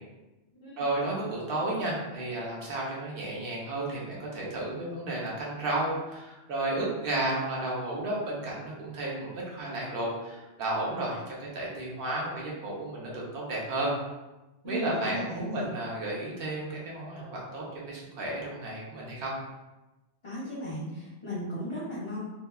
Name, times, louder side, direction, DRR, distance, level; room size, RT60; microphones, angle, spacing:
voice 1, 0.8-13.9 14.6-19.3, right 2 dB, 60° right, -4 dB, 0.9 m, -33 dB
voice 2, 14.6-15.7 20.2-22.2, equal, 35° left, -11 dB, 0.6 m, -36 dB
2.8 x 2.1 x 2.2 m, 1.1 s
omnidirectional pair, 1.2 m